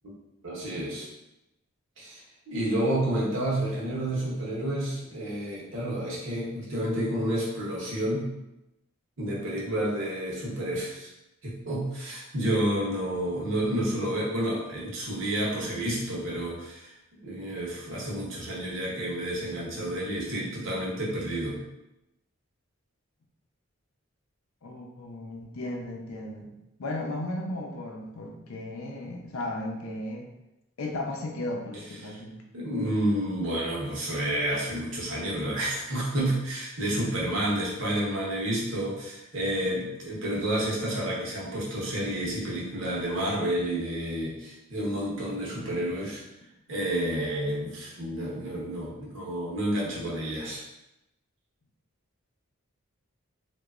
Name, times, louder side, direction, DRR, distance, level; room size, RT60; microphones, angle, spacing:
voice 1, 0.4-1.1 2.0-2.2 2.5-8.2 9.2-11.1 11.4-21.6 32.0-32.2 32.5-46.2 46.7-50.6, right 1 dB, 60° right, -5 dB, 0.8 m, -30 dB
voice 2, 24.6-26.5 26.8-30.3 30.8-32.4, left 1 dB, 80° left, 1 dB, 0.5 m, -35 dB
2.9 x 2.2 x 2.3 m, 0.91 s
head